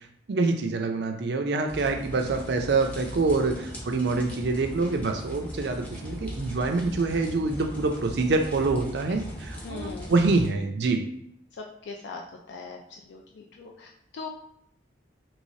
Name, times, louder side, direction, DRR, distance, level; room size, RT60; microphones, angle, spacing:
voice 1, 0.3-11.0, right 3 dB, 60° right, 5 dB, 0.4 m, -26 dB
sound 1, 1.7-10.5, equal, 5° left, 0.5 m, -39 dB
voice 2, 9.6-10.1 11.5-12.2 12.5-14.3, left 4 dB, 70° left, 0 dB, 0.3 m, -40 dB
3.1 x 3.1 x 2.7 m, 0.73 s
head